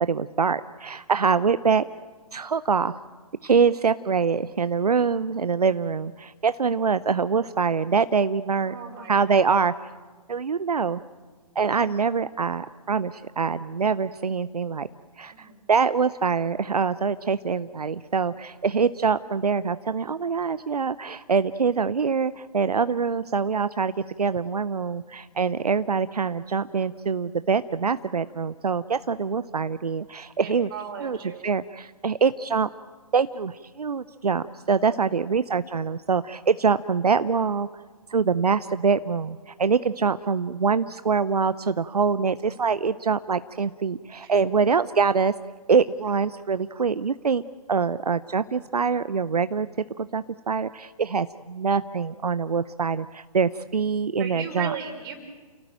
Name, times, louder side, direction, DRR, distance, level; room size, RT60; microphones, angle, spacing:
voice 1, 0.1-1.8 2.3-2.9 3.4-8.7 9.1-9.7 10.3-11.0 11.6-14.9 15.2-23.9 24.2-30.7 31.0-31.2 31.4-32.7 33.1-37.7 38.1-45.3 45.7-47.4 47.7-49.7 50.0-54.7, right 5 dB, 80° right, 14 dB, 0.7 m, -24 dB
voice 2, 8.6-9.6 15.3-15.6 30.4-31.5 34.8-35.0 44.2-44.3 54.2-55.1, right 7 dB, 35° right, 5 dB, 4.8 m, -37 dB
29.0 x 17.0 x 9.1 m, 1.4 s
figure-of-eight pair, 135°, 20 cm